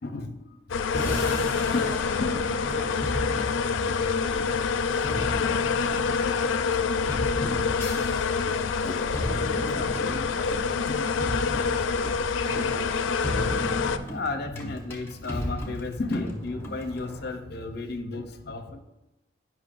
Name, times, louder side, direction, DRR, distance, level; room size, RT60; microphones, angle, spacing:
voice 1, 0.0-0.3 1.7-1.9 2.2-2.5 5.4-5.6 7.0-7.8 8.8-10.6 10.9-11.2 14.1-18.8, left 2 dB, 55° left, 6 dB, 0.7 m, -34 dB
sound 1, 0.7-14.0, left 5 dB, 90° left, 0.4 m, -26 dB
sound 2, 0.9-17.3, equal, 15° left, 1.0 m, -36 dB
voice 2, 2.6-4.5 5.0-5.6 9.8-13.8, right 1 dB, 60° right, -2 dB, 1.9 m, -44 dB
9.9 x 5.7 x 2.5 m, 1.0 s
head